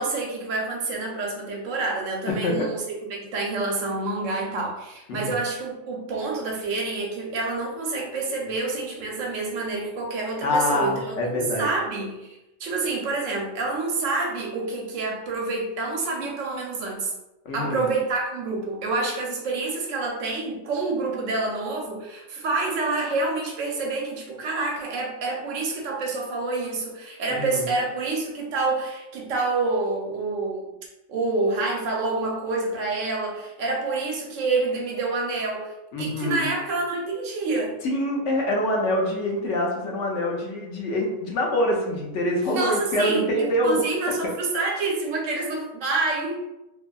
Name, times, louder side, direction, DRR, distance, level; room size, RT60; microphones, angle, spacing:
voice 1, 0.0-2.8 3.1-17.1 17.5-30.7 31.1-37.8 42.4-46.4, right 3 dB, 75° right, -1 dB, 0.9 m, -28 dB
voice 2, 2.3-2.7 5.1-5.3 10.4-11.7 17.5-17.8 27.3-27.7 35.9-36.5 37.8-43.8, left 1 dB, 70° left, 0 dB, 0.8 m, -25 dB
2.7 x 2.5 x 2.2 m, 0.95 s
omnidirectional pair, 1.4 m